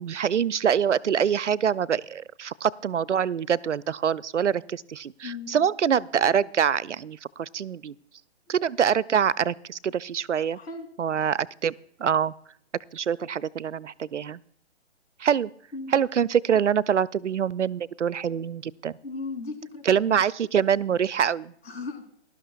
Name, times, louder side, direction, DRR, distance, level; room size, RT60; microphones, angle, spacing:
voice 1, 0.0-7.9 8.5-10.6 11.0-11.7 12.0-12.3 12.9-14.4 15.2-15.5 15.9-18.9 19.9-21.5, right 8 dB, 90° right, 22 dB, 0.5 m, -25 dB
voice 2, 5.2-5.6 10.5-10.9 15.7-15.9 19.0-20.2 21.6-22.0, left 3 dB, 60° left, 5 dB, 3.2 m, -36 dB
17.5 x 12.0 x 2.3 m, 0.66 s
figure-of-eight pair, 140°, 35 cm